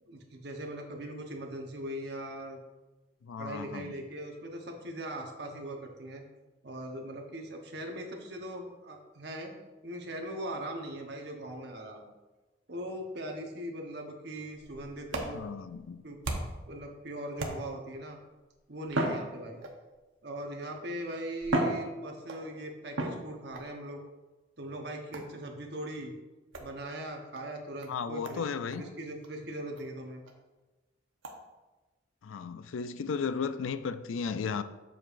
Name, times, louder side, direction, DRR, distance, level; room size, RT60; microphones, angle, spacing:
voice 1, 0.0-2.6 3.4-6.2 6.6-9.5 9.8-12.0 12.7-15.4 16.0-16.2 16.7-18.2 18.7-19.7 20.2-24.0 24.6-26.1 26.6-28.4 28.7-30.2, right 1 dB, 55° right, 1.0 m, -40 dB
voice 2, 3.2-3.9 15.3-16.0 27.9-28.8 32.2-34.6, left 5 dB, 90° left, 0.4 m, -35 dB
sound 1, 14.5-16.7 17.4-18.0 18.9-20.0 20.8-20.9 21.4-22.5 23.0-23.7 25.1-25.4 26.5-26.7 27.3-27.4 27.8-27.9 28.2-28.4 28.7-28.8 29.2-29.3 29.8-29.9 30.3-30.4 31.2-31.4, right 1 dB, 85° right, 0.9 m, -35 dB
7.5 x 6.7 x 2.6 m
head